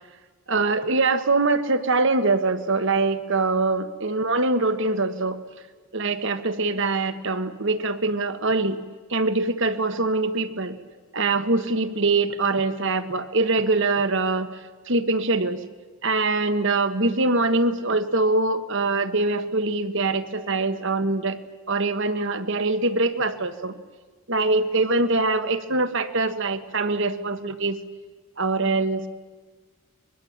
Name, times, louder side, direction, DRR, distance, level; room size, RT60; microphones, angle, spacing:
voice 1, 0.5-5.4 5.9-8.8 9.1-10.8 11.1-14.6 14.8-15.7 16.0-21.4 21.7-23.7 24.3-27.8 28.4-29.1, right 3 dB, 60° right, 10 dB, 1.6 m, -23 dB
24.5 x 21.5 x 9.0 m, 1.4 s
head